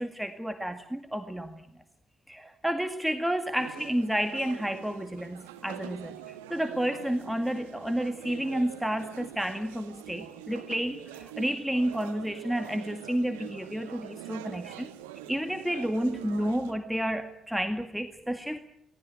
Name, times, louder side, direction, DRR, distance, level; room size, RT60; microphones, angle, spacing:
voice 1, 0.0-1.6 2.3-14.9 15.3-18.6, equal, 5° right, 8 dB, 2.0 m, -31 dB
sound 1, 3.6-16.7, right 12 dB, 75° right, 1.3 m, -45 dB
24.0 x 19.0 x 9.0 m, 0.77 s
figure-of-eight pair, 40°, 0 cm